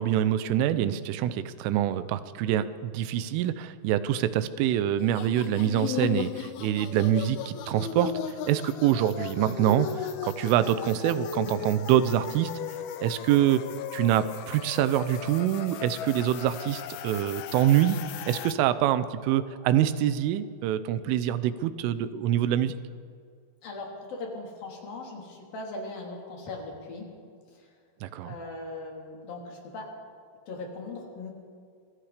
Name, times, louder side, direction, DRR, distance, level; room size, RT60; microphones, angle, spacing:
voice 1, 0.0-8.1 8.5-12.5 13.0-13.6 13.9-18.0 18.3-22.7 28.0-28.4, right 11 dB, 85° right, 13 dB, 3.4 m, -25 dB
sound 1, 5.0-18.5, left 10 dB, 85° left, 2.1 m, -36 dB
voice 2, 23.6-27.1 28.2-29.9 30.5-31.3, left 2 dB, 50° left, -1 dB, 4.9 m, -39 dB
27.0 x 22.5 x 5.1 m, 2.2 s
omnidirectional pair, 5.7 m